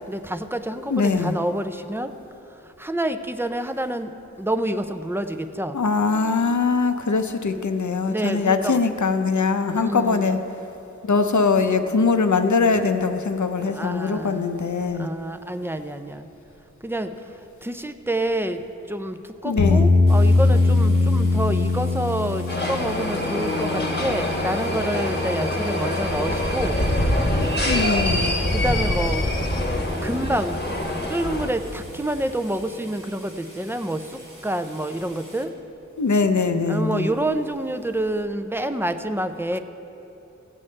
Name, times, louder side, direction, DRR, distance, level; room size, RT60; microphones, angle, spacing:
voice 1, 0.0-2.1 2.6-4.1 4.4-5.8 8.1-8.8 9.7-10.3 13.7-14.5 15.0-16.3 16.8-17.1 17.6-18.6 18.9-26.8 28.5-29.2 30.0-30.8 31.0-35.5 36.7-39.6, right 1 dB, 5° right, 8 dB, 0.5 m, -28 dB
voice 2, 0.9-1.3 5.7-10.4 11.0-15.1 19.4-19.9 27.3-28.4 36.0-37.1, left 4 dB, 65° left, 8 dB, 0.7 m, -22 dB
sound 1, 19.6-32.1, left 3 dB, 90° left, 1.1 m, -24 dB
sound 2, 20.1-35.4, right 1 dB, 85° right, 1.5 m, -46 dB
sound 3, 22.5-31.5, left 1 dB, 35° left, 1.1 m, -25 dB
16.5 x 8.4 x 3.3 m, 3.0 s
wide cardioid pair, 40°, 31 cm